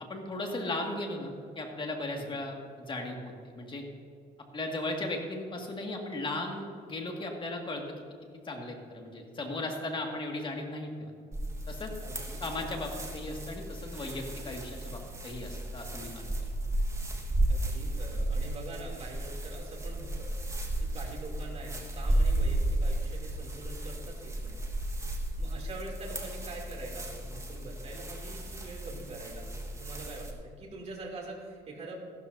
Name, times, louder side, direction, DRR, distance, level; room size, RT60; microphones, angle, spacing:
voice 1, 0.1-3.8 4.5-8.0 8.4-11.1 11.7-12.0 12.4-16.3, left 2 dB, 30° left, 2 dB, 1.9 m, -36 dB
sound 1, 11.3-30.3, right 1 dB, 15° right, 1.5 m, -34 dB
voice 2, 12.0-12.4 17.5-20.3 20.9-24.6 25.4-31.9, right 2 dB, 40° right, -2 dB, 2.8 m, -44 dB
14.5 x 12.5 x 2.7 m, 2.3 s
cardioid pair, 110°, 17 cm